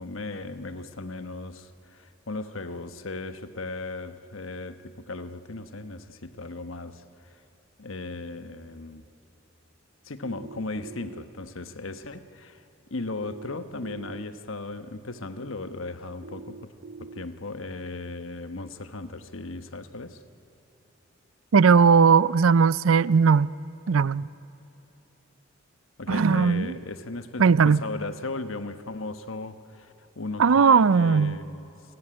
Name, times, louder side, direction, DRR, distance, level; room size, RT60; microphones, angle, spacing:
voice 1, 0.0-7.4 7.8-9.0 10.0-12.6 12.9-16.7 17.0-20.2 26.0-31.7, left 3 dB, 75° left, 1.2 m, -37 dB
sound 1, 10.2-11.2 13.2-14.2 16.2-17.2, right 4 dB, 50° right, 0.8 m, -43 dB
voice 2, 21.5-23.5 23.9-24.3 26.1-26.7 27.4-27.8 30.4-31.4, right 5 dB, 80° right, 0.5 m, -18 dB
28.0 x 18.0 x 9.9 m
head